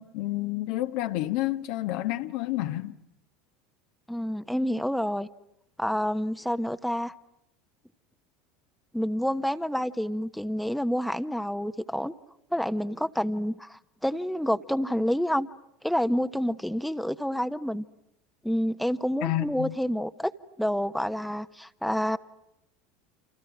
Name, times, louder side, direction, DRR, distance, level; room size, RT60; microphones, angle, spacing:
voice 1, 0.0-2.9 19.2-19.7, left 16 dB, 60° left, 1.3 m, -29 dB
voice 2, 4.1-5.3 5.8-7.1 8.9-12.1 12.5-15.5 15.8-17.8 18.4-20.3 20.6-22.2, equal, ahead, 1.2 m, -28 dB
29.5 x 28.5 x 6.1 m
hypercardioid pair, 80°, 0 cm